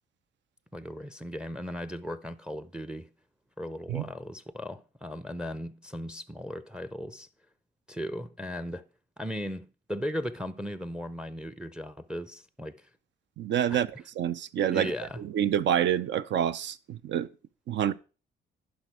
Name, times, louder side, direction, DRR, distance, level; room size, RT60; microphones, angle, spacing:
voice 1, 0.7-3.1 3.6-7.3 7.9-8.9 9.2-12.9 13.7-13.8 14.7-15.2, equal, 5° right, 0.5 m, -37 dB
voice 2, 13.4-13.9 14.2-14.9 15.3-17.3 17.7-17.9, right 9 dB, 65° right, 0.6 m, -27 dB
11.0 x 5.2 x 4.7 m
cardioid pair, 90°, 20 cm